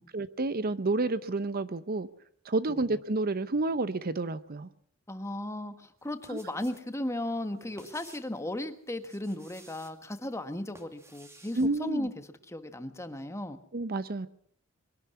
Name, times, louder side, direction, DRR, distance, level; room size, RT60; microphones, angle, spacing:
voice 1, 0.1-2.1 2.4-4.7 6.3-6.4 11.6-12.1 13.7-14.3, right 2 dB, 45° right, 14 dB, 0.8 m, -30 dB
voice 2, 5.1-12.1 12.5-13.6, left 1 dB, 15° left, 9 dB, 1.4 m, -36 dB
sound 1, 6.0-6.9 7.2-8.4 9.0-10.0 10.5-11.7, right 2 dB, 15° right, 2.4 m, -55 dB
23.0 x 11.5 x 9.6 m, 0.64 s
head